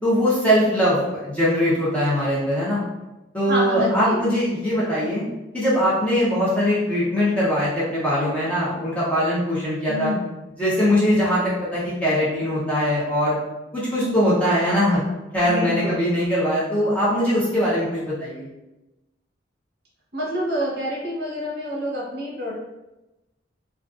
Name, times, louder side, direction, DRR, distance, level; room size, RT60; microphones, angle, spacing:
voice 1, 0.0-1.0 1.2-2.8 3.3-5.2 5.5-10.1 10.6-13.4 13.7-15.0 15.3-18.5, equal, 5° left, -8 dB, 0.6 m, -21 dB
voice 2, 3.5-4.2 9.9-10.2 14.0-14.5 15.4-16.0 20.1-22.5, equal, 55° right, -4 dB, 0.7 m, -27 dB
2.4 x 2.3 x 2.4 m, 1.0 s
head